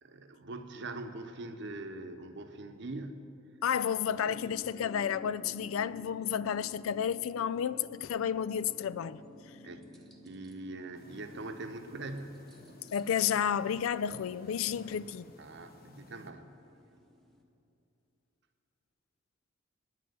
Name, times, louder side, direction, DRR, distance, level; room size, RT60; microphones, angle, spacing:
voice 1, 0.0-3.2 3.9-4.3 9.6-9.9 10.2-12.4 15.4-16.5, right 2 dB, 60° right, 0.8 m, -43 dB
voice 2, 3.6-9.2 12.9-15.3, left 8 dB, 90° left, 0.3 m, -31 dB
sound 1, 4.2-17.4, left 2 dB, ahead, 1.1 m, -53 dB
sound 2, 10.9-16.3, left 1 dB, 45° left, 0.9 m, -55 dB
9.7 x 7.7 x 9.4 m
head